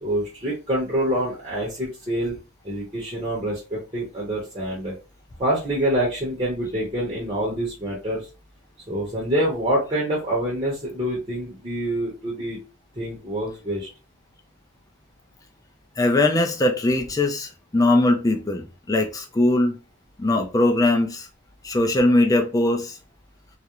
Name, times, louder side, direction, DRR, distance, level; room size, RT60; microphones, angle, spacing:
voice 1, 0.0-2.3 2.6-4.9 5.4-8.3 8.9-12.6 12.9-13.9, right 1 dB, 30° right, 0.7 m, -26 dB
voice 2, 16.0-19.8 20.2-21.3 21.6-23.0, left 2 dB, 20° left, 0.4 m, -20 dB
2.4 x 2.0 x 2.8 m
head